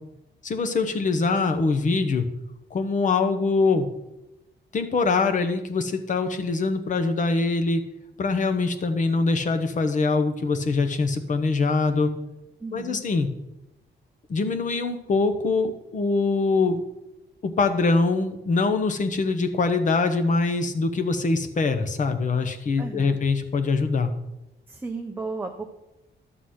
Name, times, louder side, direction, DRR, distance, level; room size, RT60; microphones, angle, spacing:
voice 1, 0.4-2.3 2.7-3.9 4.7-7.8 8.2-12.1 12.7-13.3 14.3-16.8 17.4-24.1, left 3 dB, 40° left, 7 dB, 0.9 m, -23 dB
voice 2, 12.6-13.0 22.8-23.2 24.7-25.6, right 3 dB, 10° right, 3 dB, 0.6 m, -34 dB
11.5 x 4.0 x 7.8 m, 0.93 s
wide cardioid pair, 165°, 19 cm